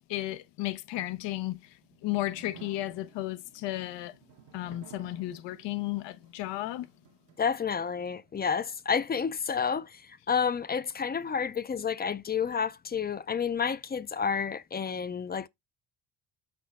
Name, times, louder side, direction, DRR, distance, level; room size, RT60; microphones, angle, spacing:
voice 1, 0.1-4.2 4.5-6.9, left 16 dB, 90° left, 0.7 m, -34 dB
sound 1, 1.6-8.7, right 10 dB, 80° right, 1.2 m, -56 dB
voice 2, 7.4-15.5, left 6 dB, 25° left, 0.4 m, -30 dB
6.0 x 4.5 x 3.5 m
cardioid pair, 90°, 41 cm